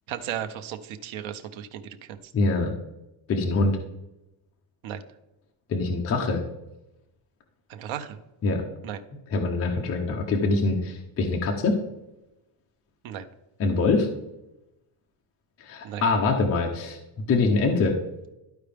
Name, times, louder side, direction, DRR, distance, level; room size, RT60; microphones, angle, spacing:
voice 1, 0.1-2.2 4.8-5.0 7.7-8.2 8.8-9.0 13.0-13.3 15.8-16.0, right 10 dB, 85° right, 7 dB, 0.9 m, -35 dB
voice 2, 2.3-2.7 3.3-3.8 5.7-6.4 8.4-8.6 9.3-11.8 13.6-14.1 15.6-17.0 17.3-18.0, left 3 dB, 30° left, 1 dB, 0.8 m, -24 dB
12.5 x 4.7 x 3.4 m, 0.93 s
cardioid pair, 170°, 46 cm